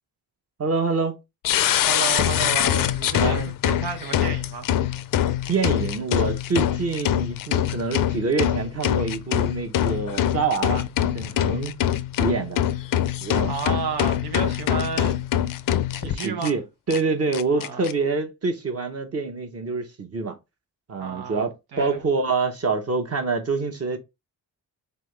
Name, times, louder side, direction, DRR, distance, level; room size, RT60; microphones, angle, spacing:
voice 1, 0.6-1.2 3.2-3.5 5.5-10.9 11.1-11.7 12.2-12.6 13.2-13.5 16.0-20.4 20.9-24.0, right 4 dB, 40° right, 1.0 m, -26 dB
sound 1, 1.4-16.5 16.9-17.0 17.3-17.9, left 11 dB, 60° left, 0.5 m, -24 dB
voice 2, 1.9-4.7 13.5-15.2 15.9-16.6 17.5-17.8 21.0-22.0, right 5 dB, 85° right, 1.1 m, -32 dB
3.9 x 3.4 x 3.3 m
cardioid pair, 95°, 37 cm